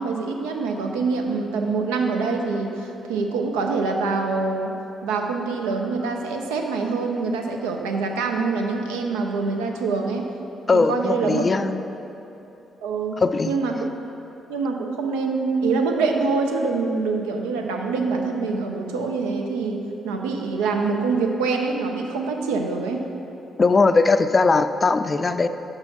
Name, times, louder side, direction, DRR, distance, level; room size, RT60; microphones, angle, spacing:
voice 1, 0.0-4.7 5.0-10.3 10.7-11.5 12.8-13.2 13.5-13.9 14.5-19.8 20.0-23.1, right 4 dB, 80° right, 2 dB, 0.5 m, -25 dB
voice 2, 10.7-11.8 13.2-13.6 23.6-25.5, left 4 dB, 35° left, 11 dB, 0.3 m, -19 dB
6.7 x 5.5 x 4.3 m, 2.9 s
hypercardioid pair, 45°, 0 cm